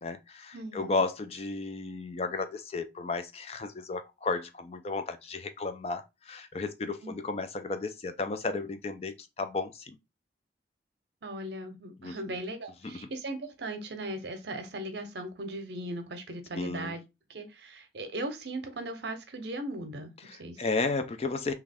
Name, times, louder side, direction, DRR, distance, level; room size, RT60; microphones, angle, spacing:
voice 1, 0.0-10.0 12.0-12.2 12.8-13.1 16.5-17.0 20.2-21.5, left 3 dB, 35° left, 0.3 m, -33 dB
voice 2, 0.5-1.0 7.0-7.2 11.2-17.0 17.3-20.6, right 1 dB, 70° right, 0.7 m, -38 dB
3.0 x 2.3 x 3.4 m
head